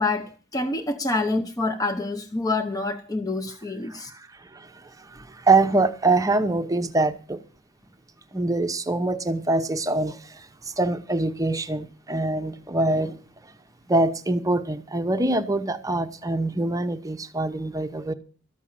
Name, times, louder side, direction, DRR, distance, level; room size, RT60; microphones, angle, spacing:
voice 1, 0.0-4.1, left 2 dB, 20° left, 0.8 m, -27 dB
voice 2, 5.1-7.4 8.3-10.2 10.8-13.2 13.9-18.1, right 2 dB, 15° right, 0.8 m, -24 dB
13.0 x 6.2 x 8.7 m
head